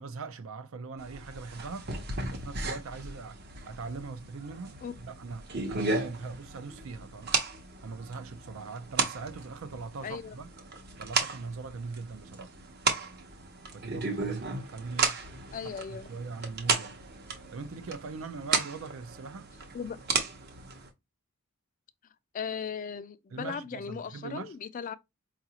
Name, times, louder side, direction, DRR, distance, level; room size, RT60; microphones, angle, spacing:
voice 1, 0.0-1.9 2.3-7.3 7.8-10.5 11.0-12.5 13.7-15.2 15.6-17.0 17.5-19.5 23.3-24.5, right 4 dB, 70° right, 0.5 m, -41 dB
sound 1, 1.0-20.9, right 4 dB, 50° right, 0.8 m, -35 dB
voice 2, 10.0-10.4 15.5-16.1 19.7-20.0 22.3-25.0, left 6 dB, 40° left, 0.3 m, -37 dB
4.8 x 2.5 x 2.8 m
head